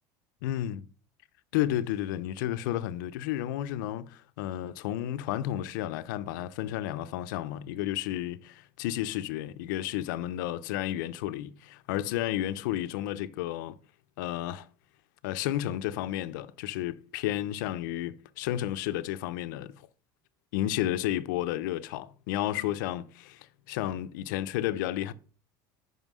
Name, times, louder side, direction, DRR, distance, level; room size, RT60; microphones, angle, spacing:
voice 1, 0.4-0.9 1.5-13.8 14.2-14.7 15.2-19.8 20.5-25.1, left 13 dB, 80° left, 0.6 m, -32 dB
5.7 x 5.5 x 6.1 m
supercardioid pair, 150°, 10 cm